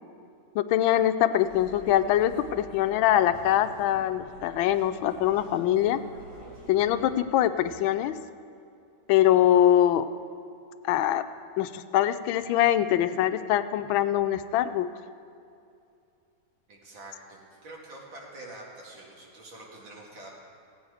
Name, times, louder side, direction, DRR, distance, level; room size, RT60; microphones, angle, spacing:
voice 1, 0.5-6.0 6.7-8.2 9.1-10.1 10.8-11.2 11.6-14.9, left 11 dB, 85° left, 12 dB, 1.4 m, -23 dB
sound 1, 1.4-7.1, right 1 dB, 55° right, 4.4 m, -47 dB
voice 2, 16.7-20.3, right 2 dB, 80° right, -2 dB, 2.7 m, -46 dB
16.5 x 8.6 x 4.8 m, 2.6 s
omnidirectional pair, 2.1 m